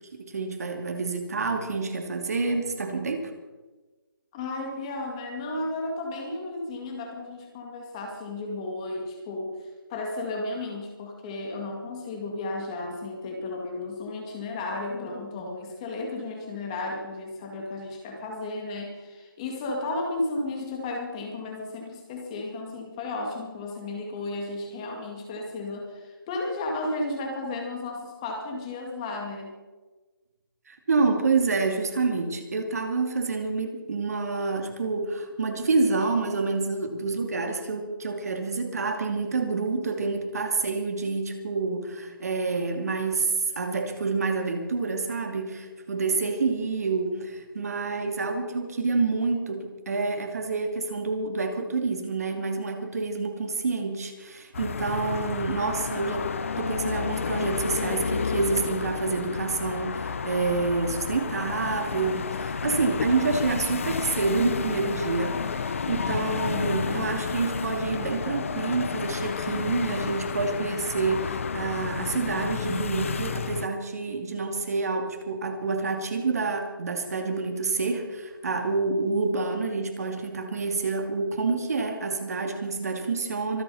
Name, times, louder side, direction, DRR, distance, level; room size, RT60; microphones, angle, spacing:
voice 1, 0.1-3.3 30.7-56.3 56.6-83.6, right 4 dB, 45° right, 4 dB, 2.6 m, -28 dB
voice 2, 4.3-9.6 9.9-29.5, left 2 dB, 15° left, 1 dB, 2.1 m, -33 dB
sound 1, 54.5-73.7, left 5 dB, 35° left, 0.8 m, -31 dB
25.0 x 8.8 x 5.6 m, 1.2 s
figure-of-eight pair, 170°, 12 cm